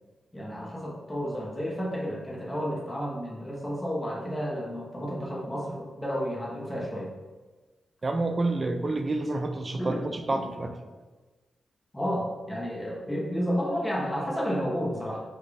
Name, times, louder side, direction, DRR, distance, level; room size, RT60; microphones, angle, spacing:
voice 1, 0.3-7.1 9.8-10.0 11.9-15.2, equal, 10° left, -4 dB, 0.8 m, -31 dB
voice 2, 8.0-10.7, right 2 dB, 30° right, 6 dB, 0.3 m, -28 dB
4.0 x 2.3 x 3.3 m, 1.3 s
wide cardioid pair, 120°, 0 cm